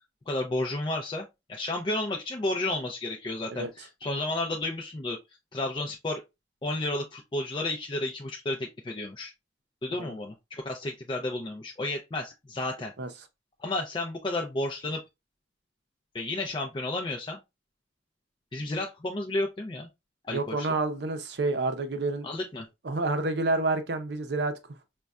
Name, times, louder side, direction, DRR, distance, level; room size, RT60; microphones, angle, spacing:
voice 1, 0.3-5.2 5.5-6.2 6.6-9.3 9.8-12.9 13.6-15.0 16.1-17.4 18.5-19.9 20.2-20.7 22.2-22.7, left 2 dB, 25° left, 0.4 m, -32 dB
voice 2, 20.3-22.3 22.8-24.5, right 3 dB, 60° right, 0.6 m, -28 dB
5.1 x 2.2 x 2.3 m
head